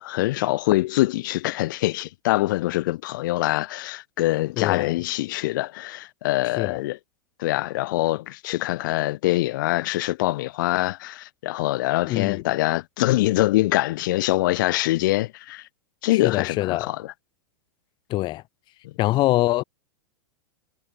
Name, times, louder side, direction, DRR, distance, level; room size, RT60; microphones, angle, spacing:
voice 1, 0.0-7.0 7.4-15.6 16.0-17.1, left 17 dB, 55° left, 1.5 m, -24 dB
voice 2, 4.6-4.9 6.6-6.8 12.1-12.4 16.1-16.9 18.1-18.4 19.0-19.6, left 17 dB, 35° left, 2.7 m, -24 dB
figure-of-eight pair, 95°, 13 cm